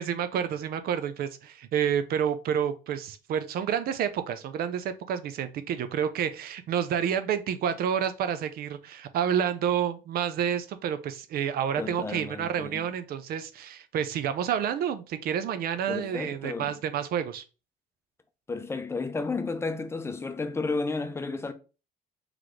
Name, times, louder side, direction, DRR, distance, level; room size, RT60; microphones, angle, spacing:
voice 1, 0.0-17.4, right 8 dB, 65° right, 0.5 m, -29 dB
voice 2, 11.8-12.9 15.9-16.7 18.5-21.5, left 3 dB, 15° left, 0.5 m, -32 dB
3.9 x 3.1 x 3.2 m
cardioid pair, 110°, 17 cm